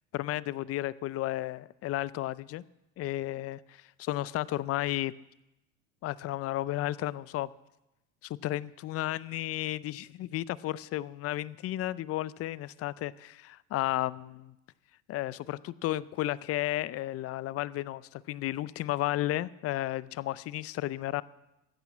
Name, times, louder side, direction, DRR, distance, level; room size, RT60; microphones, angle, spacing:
voice 1, 0.1-2.6 3.0-5.1 6.0-7.5 8.2-14.5 15.1-21.2, left 15 dB, 40° left, 0.5 m, -33 dB
14.5 x 8.8 x 7.2 m
hypercardioid pair, 85°, 37 cm